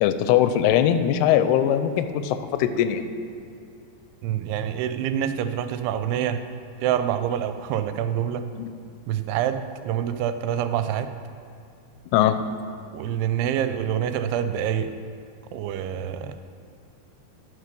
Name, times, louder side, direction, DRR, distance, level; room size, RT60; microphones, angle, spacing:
voice 1, 0.0-3.0 8.6-8.7 12.1-12.4, left 10 dB, 90° left, 10 dB, 2.6 m, -21 dB
voice 2, 4.2-6.4 6.8-8.4 9.1-11.1 12.9-14.9 15.5-16.4, right 9 dB, 85° right, 10 dB, 2.6 m, -26 dB
13.5 x 6.4 x 5.3 m, 2.4 s
omnidirectional pair, 4.6 m